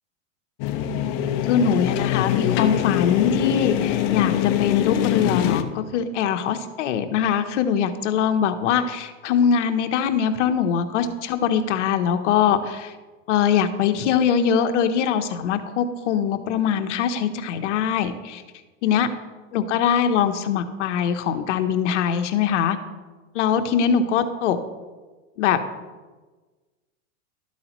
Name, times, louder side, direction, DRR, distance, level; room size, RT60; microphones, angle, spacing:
sound 1, 0.6-5.6, left 11 dB, 40° left, 0.6 m, -23 dB
voice 1, 1.4-12.9 13.3-18.4 18.8-19.1 19.5-22.8 23.3-24.6 25.4-25.6, left 8 dB, 70° left, 8 dB, 1.0 m, -22 dB
12.5 x 8.4 x 3.1 m, 1.3 s
supercardioid pair, 145°, 38 cm